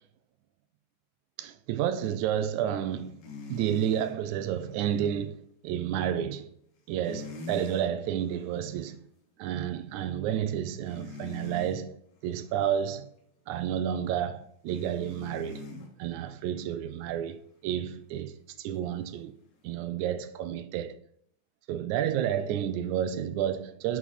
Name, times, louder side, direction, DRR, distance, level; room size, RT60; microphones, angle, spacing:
voice 1, 1.4-3.2 3.5-6.5 6.9-9.0 9.4-12.0 12.2-13.1 13.5-15.7 16.0-19.4 19.6-21.0 21.7-24.0, right 10 dB, 85° right, 1.9 m, -31 dB
sound 1, 3.2-4.1 7.0-7.9 8.3-8.5 10.9-11.8 14.7-15.9 19.0-19.1, left 3 dB, 75° left, 2.7 m, -42 dB
7.0 x 4.8 x 4.1 m
omnidirectional pair, 3.4 m